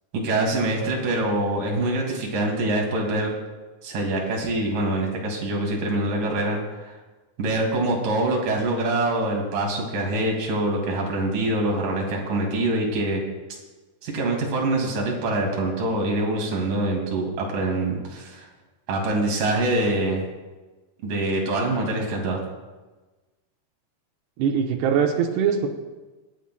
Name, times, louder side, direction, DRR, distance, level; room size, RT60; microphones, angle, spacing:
voice 1, 0.1-3.3 3.8-7.0 7.4-13.2 14.0-18.5 18.9-20.2 21.0-22.4, right 2 dB, 55° right, -1 dB, 3.6 m, -25 dB
voice 2, 24.4-25.7, right 7 dB, 90° right, 2 dB, 3.1 m, -22 dB
26.5 x 10.0 x 2.2 m, 1.2 s
omnidirectional pair, 4.7 m